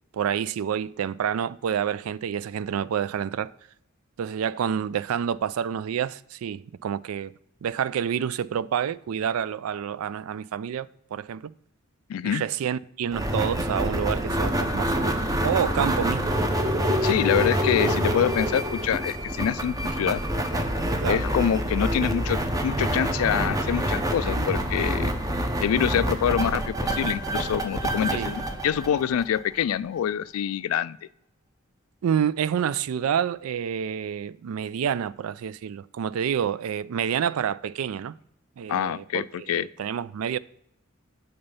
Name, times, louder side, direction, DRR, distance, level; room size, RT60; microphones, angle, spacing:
voice 1, 0.1-3.5 4.2-7.3 7.6-11.5 12.2-16.3 21.0-21.2 24.4-24.5 28.1-28.3 32.0-38.1 38.6-40.4, right 8 dB, 90° right, 0.3 m, -28 dB
voice 2, 12.1-12.4 17.0-20.2 21.1-25.1 25.6-31.0 38.7-39.7, left 9 dB, 80° left, 0.3 m, -26 dB
sound 1, 13.1-29.6, equal, 15° right, 0.7 m, -26 dB
8.7 x 4.0 x 5.5 m
head